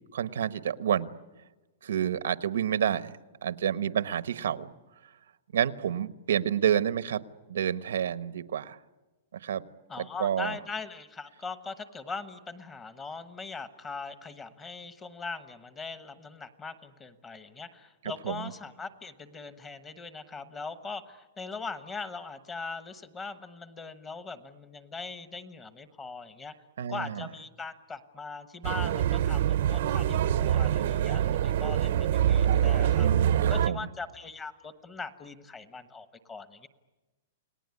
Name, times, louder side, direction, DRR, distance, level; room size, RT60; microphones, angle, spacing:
voice 1, 0.1-1.1 1.8-3.1 3.4-4.7 5.5-7.2 7.5-8.8 9.3-9.6 10.0-10.6 18.2-18.5 26.8-27.3 33.0-33.9, right 9 dB, 85° right, 13 dB, 1.1 m, -29 dB
voice 2, 9.9-26.5 26.9-36.7, left 4 dB, 15° left, 11 dB, 1.1 m, -41 dB
sound 1, 28.6-33.7, right 10 dB, 60° right, 0.8 m, -25 dB
29.5 x 19.0 x 9.7 m, 1.2 s
hypercardioid pair, 165°, 0 cm